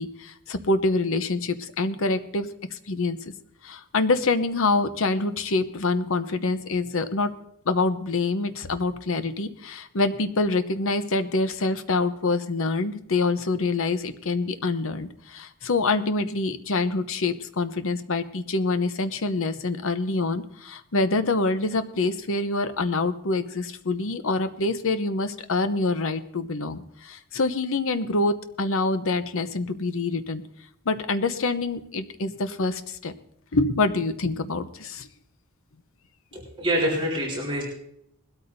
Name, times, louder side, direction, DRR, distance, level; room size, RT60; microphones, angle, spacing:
voice 1, 0.0-3.2 3.6-7.3 7.7-30.4 30.9-33.1 33.5-35.1, left 3 dB, 65° left, 10 dB, 0.9 m, -26 dB
voice 2, 36.3-37.6, equal, 25° right, -4 dB, 4.2 m, -26 dB
20.5 x 13.0 x 2.7 m, 0.73 s
head